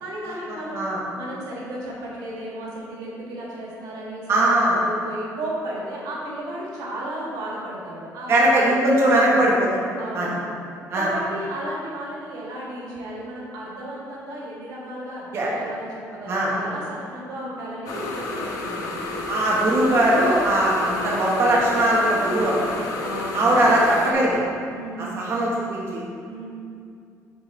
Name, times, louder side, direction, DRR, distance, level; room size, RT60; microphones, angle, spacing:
voice 1, 0.0-0.9 1.1-8.3 9.0-9.4 10.0-10.4 10.9-19.0 20.9-21.4 23.0-23.7 24.7-25.3 26.3-26.5, right 1 dB, 90° right, -4 dB, 1.6 m, -34 dB
voice 2, 4.3-4.8 8.3-9.8 10.1-10.3 10.9-11.1 15.3-15.5 16.3-16.5 19.3-22.7 23.3-24.4 25.1-26.0, right 1 dB, 40° right, -5 dB, 1.1 m, -20 dB
sound 1, 17.9-24.1, left 2 dB, 70° left, 0.9 m, -31 dB
7.7 x 4.1 x 4.3 m, 2.4 s
cardioid pair, 165°, 6 cm